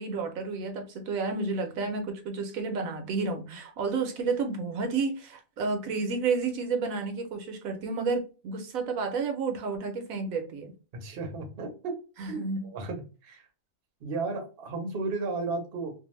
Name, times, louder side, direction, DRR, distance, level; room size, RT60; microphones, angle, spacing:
voice 1, 0.0-10.7 12.2-12.7, right 4 dB, 75° right, 1.0 m, -31 dB
voice 2, 10.9-12.0 12.2-12.4 12.7-13.4 14.0-15.9, right 3 dB, 50° right, 0.8 m, -34 dB
2.6 x 2.4 x 3.0 m
omnidirectional pair, 1.5 m